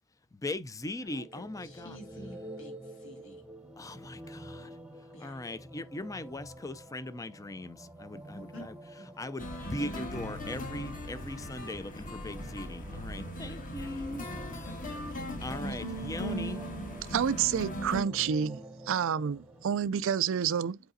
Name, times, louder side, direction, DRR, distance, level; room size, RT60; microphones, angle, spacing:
voice 1, 0.3-2.0 3.8-4.7 5.2-8.7 9.2-14.2 15.4-16.6, left 1 dB, 15° left, 0.5 m, -39 dB
voice 2, 1.0-3.4 3.9-4.3 5.1-5.4 8.3-8.7 9.0-9.2 13.1-13.5 13.7-13.9 14.6-14.9, left 1 dB, 65° left, 2.4 m, -50 dB
sound 1, 1.0-19.7, right 1 dB, 5° right, 1.0 m, -49 dB
sound 2, 9.4-18.0, equal, 40° left, 1.7 m, -38 dB
voice 3, 17.1-18.6 18.9-20.8, right 7 dB, 65° right, 0.4 m, -29 dB
8.0 x 4.9 x 2.7 m
head